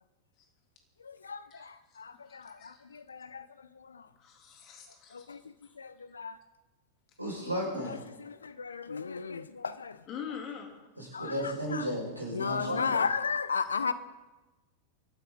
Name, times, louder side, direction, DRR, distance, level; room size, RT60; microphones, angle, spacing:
voice 1, 1.0-4.1 5.1-5.4 5.8-6.4 7.8-10.0 11.1-11.9 12.3-13.9, left 5 dB, 75° left, 0.8 m, -35 dB
voice 2, 2.3-2.8 4.2-5.4 10.1-10.7, left 7 dB, 35° left, 3.4 m, -44 dB
voice 3, 7.2-8.0 11.0-13.0, equal, 85° right, 5.8 m, -34 dB
23.5 x 12.5 x 4.0 m
figure-of-eight pair, 90°, 0 cm